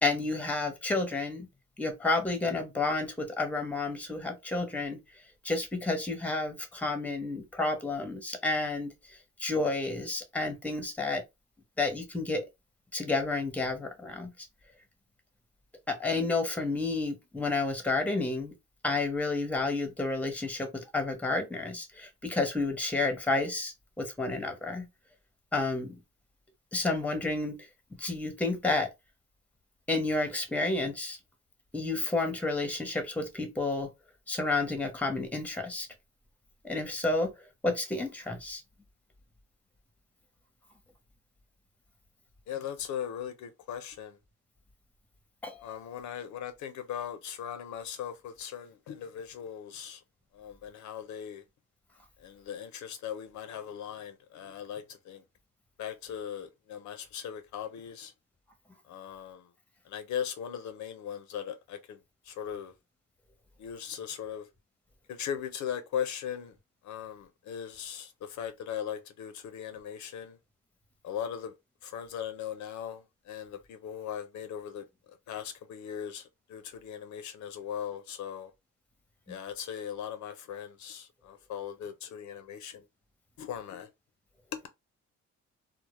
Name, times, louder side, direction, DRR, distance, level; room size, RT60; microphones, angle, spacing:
voice 1, 0.0-1.5 1.8-5.0 5.4-8.9 9.4-11.2 11.8-12.5 12.9-14.3 15.9-18.5 18.8-24.9 25.5-26.0 26.7-27.6 28.0-28.9 29.9-31.2 31.7-33.9 34.3-35.9 36.6-37.3 37.6-38.6 45.4-45.7 79.3-79.4, left 3 dB, 5° left, 0.7 m, -30 dB
voice 2, 42.5-44.2 45.6-50.0 50.3-51.4 52.2-55.2 55.8-58.1 58.9-59.5 59.9-62.0 62.3-62.7 63.6-64.5 65.1-66.6 66.8-70.4 71.0-71.5 71.8-78.5 79.3-82.8 83.4-83.9 84.5-84.7, left 9 dB, 70° left, 0.5 m, -39 dB
2.0 x 2.0 x 2.9 m
cardioid pair, 90°, 30 cm